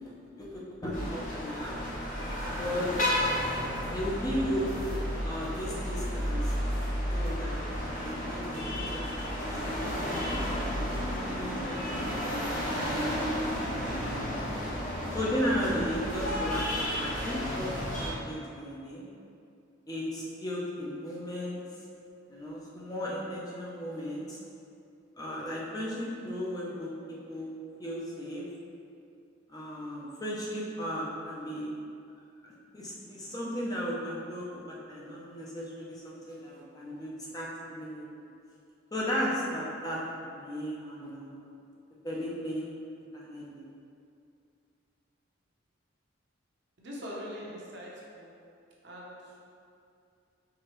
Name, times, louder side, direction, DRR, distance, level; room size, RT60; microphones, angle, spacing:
voice 1, 0.0-1.8 2.6-2.9 3.9-4.7 5.2-6.5 7.1-7.6 8.0-9.1 9.3-10.7 11.4-14.1 15.1-17.7 18.0-19.1 19.9-21.6 22.3-24.4 25.2-26.9 27.3-27.5 27.8-28.4 29.5-31.7 32.4-38.2 38.9-41.5 42.0-42.7 43.1-43.6, equal, 20° left, -5 dB, 0.6 m, -36 dB
sound 1, 0.9-18.1, equal, 40° left, 0.9 m, -32 dB
sound 2, 3.1-3.5 3.8-8.1 8.4-10.4, equal, 70° left, 1.0 m, -47 dB
voice 2, 46.8-48.3 48.8-49.4, equal, 55° right, -4 dB, 0.8 m, -42 dB
4.8 x 3.5 x 3.1 m, 2.5 s
head